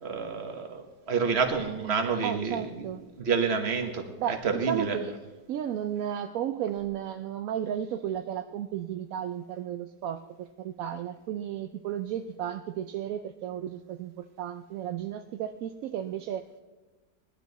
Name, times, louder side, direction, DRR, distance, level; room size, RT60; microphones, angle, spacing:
voice 1, 0.0-5.0, right 5 dB, 40° right, 6 dB, 1.4 m, -29 dB
voice 2, 2.2-3.0 4.2-5.1 5.5-14.1 14.4-16.4, right 10 dB, 70° right, 8 dB, 0.8 m, -33 dB
18.5 x 11.5 x 4.1 m, 1.2 s
omnidirectional pair, 1.8 m